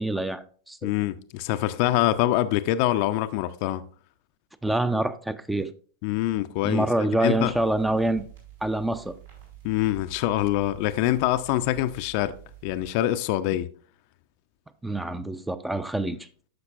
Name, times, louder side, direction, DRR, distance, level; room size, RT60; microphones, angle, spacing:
voice 1, 0.0-0.9 4.6-5.7 6.6-8.2 8.6-9.2 14.8-16.3, right 2 dB, 5° right, 0.5 m, -26 dB
voice 2, 0.8-3.8 6.0-7.5 9.6-12.3 12.6-13.7 16.0-16.1, left 14 dB, 45° left, 0.5 m, -25 dB
sound 1, 7.3-12.9, right 10 dB, 70° right, 4.0 m, -48 dB
12.5 x 5.9 x 2.4 m
figure-of-eight pair, 90°, 0 cm